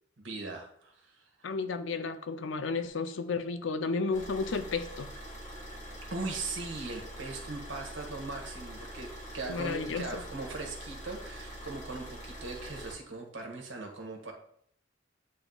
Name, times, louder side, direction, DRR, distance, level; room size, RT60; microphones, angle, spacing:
voice 1, 0.2-1.5 6.1-14.3, right 3 dB, 85° right, 1 dB, 1.4 m, -40 dB
voice 2, 1.4-5.1 9.5-10.2, left 4 dB, 80° left, 9 dB, 0.5 m, -32 dB
Car / Idling, 4.1-12.9, equal, 40° left, 2.1 m, -44 dB
8.6 x 3.0 x 3.9 m, 0.66 s
head